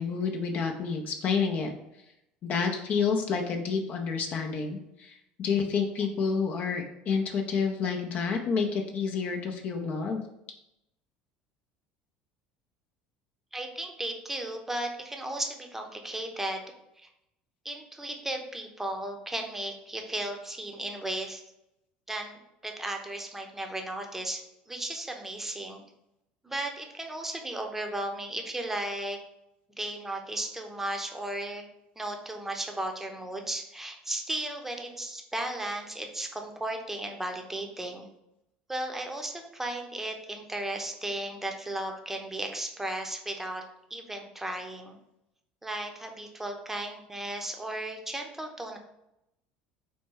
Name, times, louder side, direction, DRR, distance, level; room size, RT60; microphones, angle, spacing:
voice 1, 0.0-1.7 2.4-10.2, left 5 dB, 45° left, 2 dB, 0.6 m, -29 dB
voice 2, 13.5-16.6 17.0-17.1 17.6-21.4 22.1-25.8 26.4-29.2 29.8-31.7 32.0-38.1 38.7-43.6 43.9-45.0 45.6-48.8, right 1 dB, 10° right, 3 dB, 0.7 m, -35 dB
4.3 x 2.2 x 4.5 m, 0.84 s
supercardioid pair, 100°, 4 cm